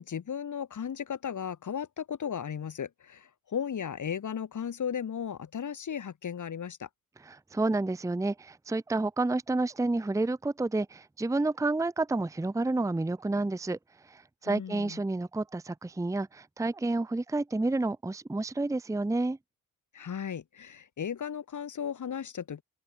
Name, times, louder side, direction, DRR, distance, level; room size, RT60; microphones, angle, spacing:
voice 1, 0.0-6.9 14.5-15.0 19.9-22.6, left 8 dB, 50° left, 1.6 m, -35 dB
voice 2, 7.2-13.8 14.1-19.4, right 2 dB, 10° right, 0.7 m, -30 dB
open air
supercardioid pair, 55°, 37 cm